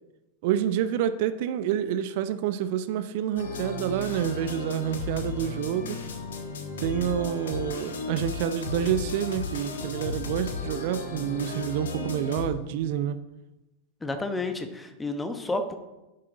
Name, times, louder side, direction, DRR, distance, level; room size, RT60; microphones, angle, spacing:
voice 1, 0.4-6.0 6.8-13.2, right 10 dB, 50° right, 12 dB, 0.5 m, -28 dB
sound 1, 3.4-12.5, left 3 dB, 65° left, 1.4 m, -35 dB
voice 2, 14.0-15.7, left 2 dB, 10° left, 8 dB, 1.1 m, -30 dB
10.5 x 7.5 x 4.0 m, 1.0 s
figure-of-eight pair, 90°, 0 cm